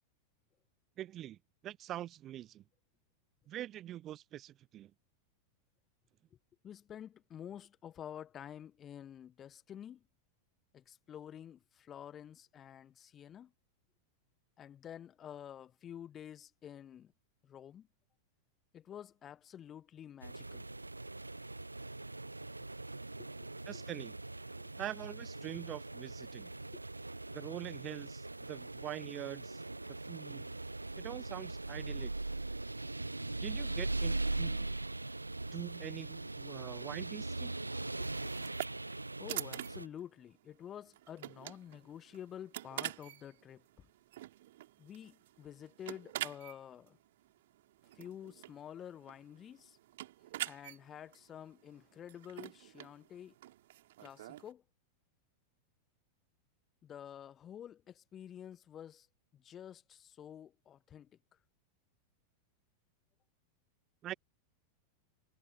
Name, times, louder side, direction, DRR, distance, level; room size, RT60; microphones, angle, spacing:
voice 1, 1.0-2.6 3.5-4.9 23.7-24.2 24.8-26.5 27.3-29.6 29.9-30.5 31.0-32.1 33.4-34.8 35.5-37.5 64.0-64.1, right 12 dB, 30° right, 0.7 m, -44 dB
voice 2, 6.6-10.0 10.7-13.5 14.6-17.1 17.4-17.9 18.7-20.6 23.2-23.5 23.7-23.8 24.6-24.7 25.5-25.6 26.7-26.8 39.2-43.9 44.8-47.0 47.9-49.8 50.4-53.4 54.0-54.6 56.8-59.1 59.3-61.1, left 9 dB, 25° left, 1.4 m, -50 dB
sound 1, 20.2-39.9, right 2 dB, 85° right, 1.0 m, -40 dB
sound 2, 38.0-54.5, right 15 dB, 55° right, 3.2 m, -46 dB
figure-of-eight pair, 90°, 0 cm